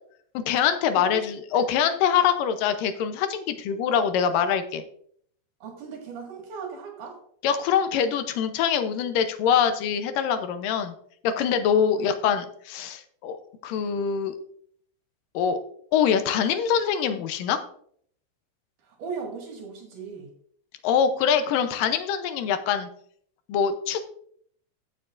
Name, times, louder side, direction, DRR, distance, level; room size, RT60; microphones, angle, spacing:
voice 1, 0.3-4.8 7.4-10.9 11.2-14.3 15.3-15.6 15.9-17.6 20.8-22.9 23.5-24.0, left 8 dB, 80° left, 9 dB, 2.4 m, -24 dB
voice 2, 0.9-1.7 5.6-7.2 12.0-12.1 18.8-20.3, right 5 dB, 70° right, 0 dB, 3.4 m, -37 dB
15.5 x 6.9 x 2.5 m, 0.63 s
omnidirectional pair, 3.9 m